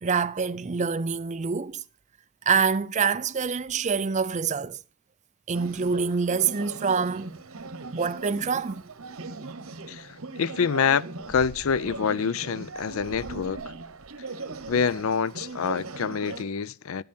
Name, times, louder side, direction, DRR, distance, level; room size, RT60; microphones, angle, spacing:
voice 1, 0.0-1.8 2.5-4.8 5.5-7.3 7.9-8.8, right 5 dB, 35° right, 0.5 m, -26 dB
sound 1, 5.5-16.4, right 3 dB, 80° right, 1.2 m, -39 dB
voice 2, 9.9-13.6 14.7-17.0, left 6 dB, 70° left, 0.5 m, -26 dB
12.5 x 10.5 x 4.4 m
head